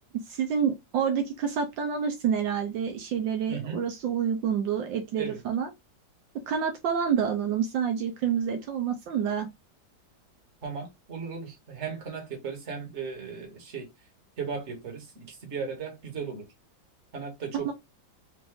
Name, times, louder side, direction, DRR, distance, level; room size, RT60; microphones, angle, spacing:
voice 1, 0.3-5.7 6.5-9.5 17.5-17.7, right 7 dB, 75° right, 1.5 m, -28 dB
voice 2, 3.5-3.8 5.2-5.4 10.6-13.9 14.4-16.5 17.1-17.7, right 5 dB, 40° right, 1.7 m, -36 dB
4.8 x 2.5 x 3.6 m
omnidirectional pair, 2.0 m